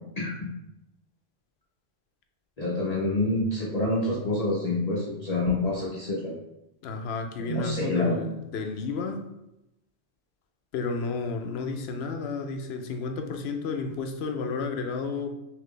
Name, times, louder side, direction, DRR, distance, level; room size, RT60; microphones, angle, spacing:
voice 1, 0.2-0.5 2.6-6.3 7.5-8.2, left 2 dB, 40° left, -6 dB, 0.8 m, -27 dB
voice 2, 6.8-9.3 10.7-15.3, left 4 dB, 80° left, 5 dB, 0.8 m, -32 dB
4.0 x 2.8 x 3.2 m, 0.88 s
omnidirectional pair, 1.1 m